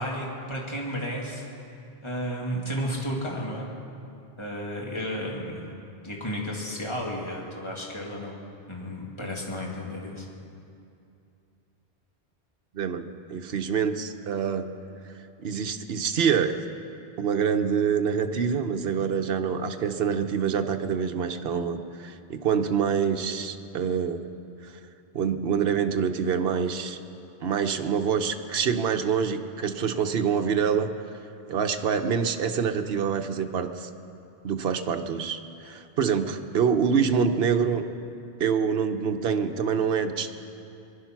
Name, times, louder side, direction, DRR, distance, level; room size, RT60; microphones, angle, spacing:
voice 1, 0.0-1.5 2.0-3.7 4.4-5.7 6.0-8.4 8.7-10.3, equal, 25° left, -2 dB, 2.2 m, -32 dB
voice 2, 12.7-14.7 15.4-16.5 17.2-24.3 24.6-24.7 25.1-27.0 27.4-30.9 31.5-33.9 34.4-37.9 38.4-40.3, right 7 dB, 65° right, 6 dB, 1.0 m, -26 dB
22.0 x 11.0 x 5.9 m, 2.6 s
omnidirectional pair, 1.1 m